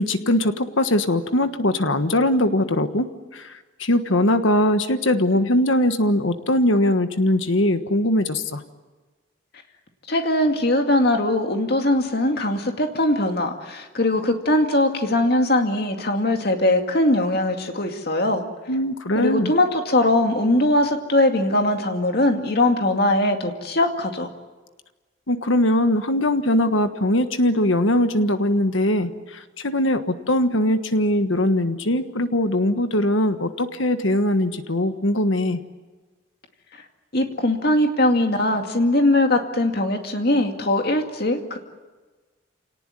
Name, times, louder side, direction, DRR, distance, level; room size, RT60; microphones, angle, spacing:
voice 1, 0.0-3.1 3.3-8.6 18.7-19.5 25.3-35.6, left 1 dB, 70° left, 9 dB, 1.4 m, -21 dB
voice 2, 10.1-18.4 19.2-24.3 37.1-41.6, left 1 dB, 50° left, 4 dB, 2.3 m, -21 dB
27.5 x 18.5 x 9.8 m, 1.3 s
head